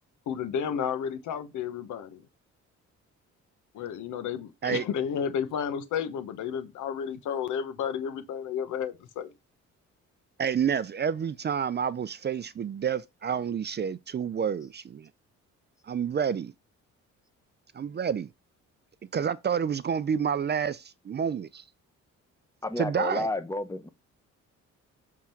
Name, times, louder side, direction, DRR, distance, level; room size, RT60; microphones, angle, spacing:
voice 1, 0.3-2.2 3.7-9.3, left 8 dB, 75° left, 1.1 m, -32 dB
voice 2, 10.4-15.1 15.9-16.5 17.7-18.3 19.1-21.6 22.8-23.3, right 7 dB, 35° right, 0.5 m, -29 dB
voice 3, 22.6-23.9, left 2 dB, 10° left, 1.0 m, -31 dB
7.2 x 3.7 x 4.5 m
cardioid pair, 90°, 30 cm